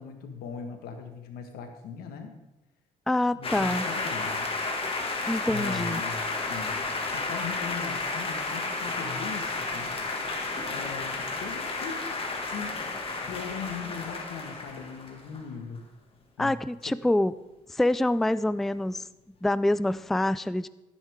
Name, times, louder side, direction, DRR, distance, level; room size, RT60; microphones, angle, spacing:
voice 1, 0.0-2.3 3.3-4.4 5.5-6.8 7.1-9.9 10.6-12.0 12.5-12.8 13.3-15.9 16.4-16.6, left 6 dB, 85° left, 5 dB, 1.7 m, -39 dB
voice 2, 3.1-3.9 5.3-6.0 16.4-17.3 17.7-19.0 19.4-20.7, left 1 dB, ahead, 16 dB, 0.3 m, -26 dB
sound 1, 3.4-15.4, left 3 dB, 40° left, 2.1 m, -32 dB
14.0 x 9.8 x 3.7 m, 1.0 s
cardioid pair, 80°, 15 cm